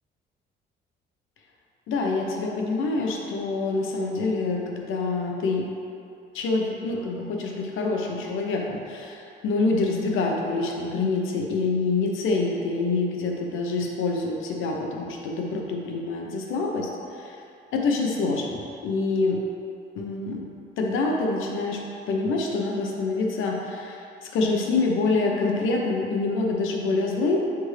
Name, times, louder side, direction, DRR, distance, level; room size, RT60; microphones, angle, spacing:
voice 1, 1.9-5.7 6.3-16.9 17.2-17.4 17.7-19.4 19.9-20.4 20.8-21.8 22.1-27.4, left 3 dB, 85° left, 0 dB, 0.9 m, -26 dB
8.7 x 3.5 x 3.2 m, 2.6 s
cardioid pair, 90°, 20 cm